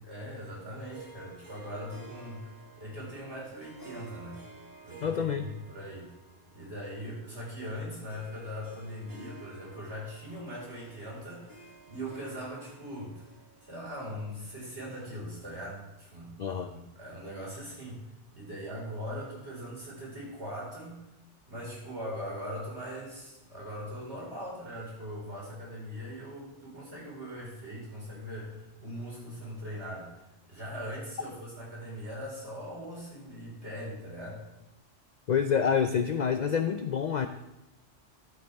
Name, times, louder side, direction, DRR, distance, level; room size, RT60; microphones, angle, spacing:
voice 1, 0.0-4.5 4.8-6.1 6.5-13.3 13.6-18.0 18.3-21.1 21.5-34.4, equal, 60° right, -5 dB, 4.9 m, -41 dB
Harp, 0.9-14.5, right 3 dB, 15° right, 1.4 m, -53 dB
voice 2, 5.0-5.5 16.4-16.7 35.3-37.3, left 7 dB, 60° left, 8 dB, 0.4 m, -27 dB
11.5 x 9.4 x 3.5 m, 0.95 s
omnidirectional pair, 1.3 m